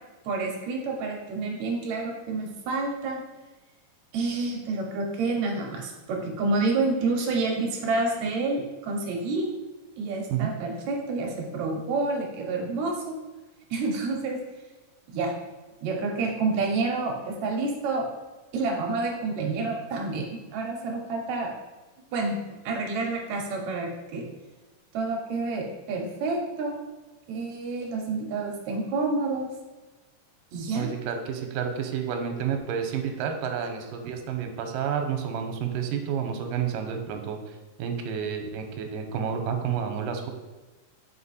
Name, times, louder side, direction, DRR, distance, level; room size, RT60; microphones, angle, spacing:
voice 1, 0.2-3.2 4.1-9.5 10.0-13.2 13.7-14.4 15.1-15.3 15.8-18.1 18.5-21.6 22.1-22.4 22.7-24.2 24.9-26.8 27.3-29.5 30.5-30.9, right 3 dB, 65° right, 0 dB, 2.0 m, -28 dB
voice 2, 30.8-37.4 37.8-40.3, right 7 dB, 85° right, 5 dB, 2.4 m, -30 dB
5.6 x 5.1 x 4.1 m, 1.2 s
omnidirectional pair, 3.8 m